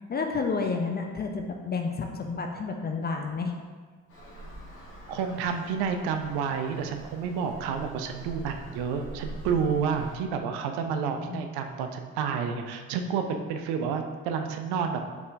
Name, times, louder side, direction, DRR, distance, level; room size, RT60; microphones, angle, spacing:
voice 1, 0.1-3.6 10.9-11.4, left 4 dB, 25° left, 3 dB, 0.4 m, -30 dB
Traffic noise roadway noise, 4.1-10.2, right 1 dB, 90° left, 0.9 m, -44 dB
voice 2, 5.1-15.0, right 6 dB, 65° right, 5 dB, 0.5 m, -30 dB
4.2 x 3.3 x 2.5 m, 1.5 s
hypercardioid pair, 40°, 43 cm